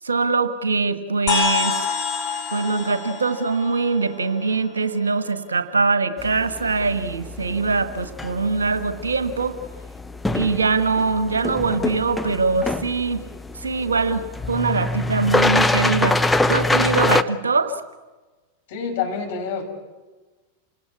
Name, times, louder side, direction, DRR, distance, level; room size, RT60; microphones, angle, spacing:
voice 1, 0.0-1.8 2.5-9.5 10.3-13.2 13.6-16.2 16.5-17.7, right 4 dB, 75° right, 10 dB, 1.5 m, -22 dB
sound 1, 1.3-5.0, left 7 dB, 35° left, 4.4 m, -27 dB
sound 2, 6.2-17.2, left 2 dB, 5° left, 0.8 m, -25 dB
voice 2, 18.7-19.6, left 6 dB, 55° left, 2 dB, 5.6 m, -27 dB
28.0 x 18.5 x 8.4 m, 1.2 s
figure-of-eight pair, 90°, 0 cm